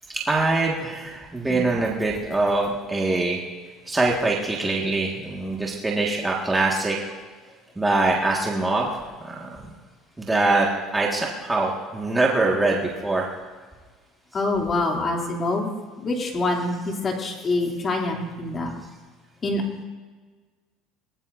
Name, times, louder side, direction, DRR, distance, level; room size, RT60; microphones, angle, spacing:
voice 1, 0.1-3.4 3.9-7.0 7.7-9.7 10.2-10.7 10.9-13.3, right 2 dB, 10° right, -3 dB, 1.7 m, -23 dB
voice 2, 14.3-15.7 16.0-18.7 19.4-19.6, left 2 dB, 30° left, 1 dB, 2.7 m, -25 dB
23.0 x 18.5 x 2.6 m, 1.4 s
cardioid pair, 140°, 0 cm